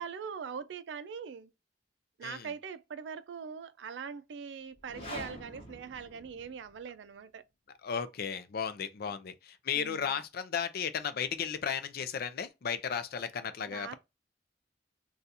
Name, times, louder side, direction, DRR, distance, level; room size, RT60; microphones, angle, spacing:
voice 1, 0.0-1.5 2.2-7.4 9.8-10.2 13.7-14.0, right 6 dB, 80° right, 0.4 m, -42 dB
sound 1, 4.7-6.9, left 1 dB, 35° left, 0.9 m, -45 dB
voice 2, 7.8-14.0, left 7 dB, 55° left, 0.4 m, -35 dB
2.6 x 2.3 x 4.0 m
head